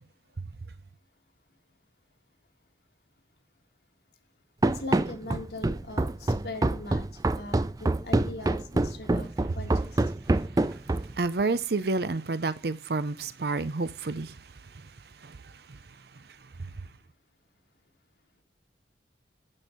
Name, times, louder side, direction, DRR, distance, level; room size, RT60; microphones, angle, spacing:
Run, 4.6-11.2, right 2 dB, 20° right, 0.4 m, -26 dB
voice 1, 4.7-7.0 7.3-9.3 9.6-10.0, left 2 dB, 65° left, 1.7 m, -40 dB
voice 2, 11.1-14.4 15.2-15.4 15.7-15.8 16.6-16.7, right 3 dB, 60° right, 0.6 m, -29 dB
11.0 x 4.5 x 5.1 m
head